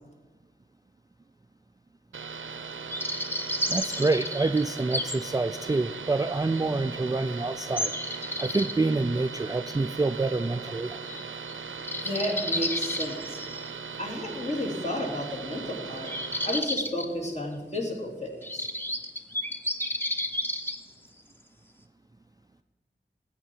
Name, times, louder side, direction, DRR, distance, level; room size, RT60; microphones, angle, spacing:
sound 1, 2.1-16.6, right 5 dB, 85° right, 0.6 m, -39 dB
sound 2, 2.9-5.2 5.6-5.8 6.6-6.7 7.8-8.7 11.1-11.2 11.5-11.6 11.8-13.7 16.0-17.1 17.7-17.8 18.4-20.8, equal, 10° left, 1.1 m, -31 dB
voice 1, 3.7-7.9 8.4-11.0, right 3 dB, 20° right, 11 dB, 0.3 m, -27 dB
voice 2, 12.0-13.4 14.0-16.1 16.4-18.7, left 1 dB, 35° left, 0 dB, 2.9 m, -32 dB
13.0 x 8.5 x 4.5 m, 1.3 s
cardioid pair, 45°, 20 cm